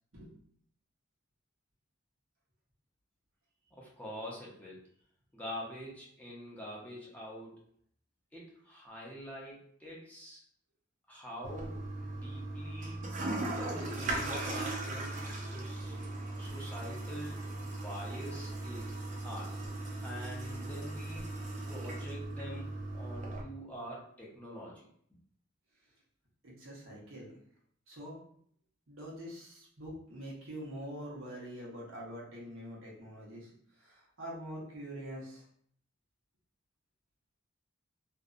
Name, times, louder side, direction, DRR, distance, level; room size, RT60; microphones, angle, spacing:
voice 1, 3.7-4.8 5.3-7.5 8.3-10.4 11.1-13.0 13.6-16.1 16.4-18.9 19.2-19.5 20.0-21.3 21.6-24.9, equal, 10° left, -5 dB, 0.6 m, -45 dB
Toilet flush, 11.4-23.4, right 2 dB, 40° right, 0.5 m, -38 dB
voice 2, 26.4-27.3 27.9-28.2 28.9-35.4, equal, 90° right, -5 dB, 0.9 m, -45 dB
2.6 x 2.1 x 2.4 m, 0.64 s
head